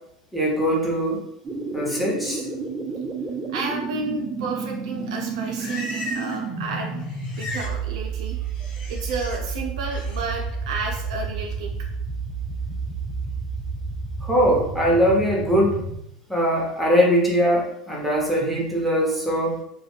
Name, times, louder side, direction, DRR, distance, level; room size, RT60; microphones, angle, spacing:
voice 1, 0.3-1.2 1.7-2.4 14.2-15.8 16.3-19.6, equal, ahead, -3 dB, 0.9 m, -21 dB
sound 1, 1.4-16.0, right 4 dB, 25° right, 0.4 m, -31 dB
voice 2, 3.5-5.9 6.1-7.0 7.4-8.4 8.9-11.7, right 3 dB, 75° right, 1 dB, 0.7 m, -31 dB
Livestock farm animals working animals, 5.0-6.5 6.7-7.8 8.1-9.4 9.8-10.2, left 2 dB, 35° left, 0.7 m, -37 dB
2.4 x 2.1 x 3.4 m, 0.79 s
hypercardioid pair, 95°, 4 cm